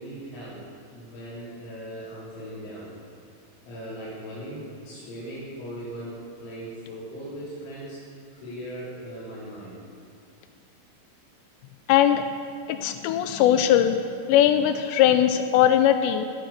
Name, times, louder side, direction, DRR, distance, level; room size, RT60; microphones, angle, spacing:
voice 1, 0.0-2.9 3.6-8.0 8.3-9.8, right 1 dB, 70° left, -10 dB, 6.1 m, -39 dB
voice 2, 11.9-12.2 12.7-14.0 14.3-16.3, left 11 dB, 90° left, 8 dB, 2.6 m, -20 dB
16.5 x 13.0 x 6.6 m, 2.4 s
omnidirectional pair, 5.7 m